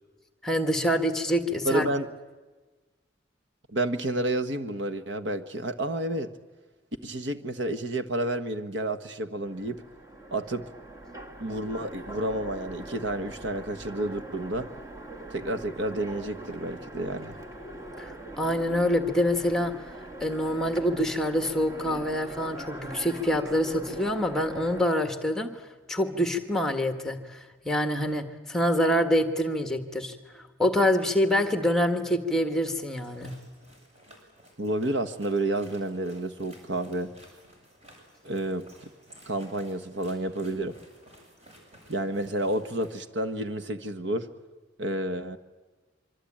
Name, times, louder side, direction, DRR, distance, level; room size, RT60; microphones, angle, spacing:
voice 1, 0.4-1.8 18.0-18.1 18.4-19.7 20.2-33.3, equal, 5° left, 6 dB, 1.6 m, -26 dB
voice 2, 1.6-2.1 3.7-6.3 7.0-9.8 10.3-10.6 11.4-14.7 15.3-17.4 34.6-37.1 38.2-38.7 39.3-40.7 41.9-44.3 44.8-45.4, right 1 dB, 65° right, 8 dB, 1.4 m, -30 dB
Train, 9.4-24.8, right 1 dB, 15° right, 2.0 m, -42 dB
sound 1, 32.8-43.0, right 1 dB, 35° right, 7.1 m, -54 dB
25.5 x 25.0 x 8.8 m, 1.3 s
head